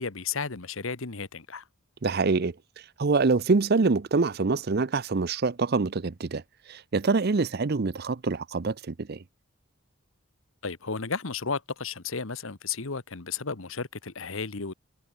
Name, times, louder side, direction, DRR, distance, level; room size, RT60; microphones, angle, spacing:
voice 1, 0.0-1.6 10.6-14.7, left 5 dB, 70° left, 1.3 m, -33 dB
voice 2, 2.0-2.5 3.0-6.4 6.7-9.2, right 4 dB, 50° right, 0.6 m, -25 dB
head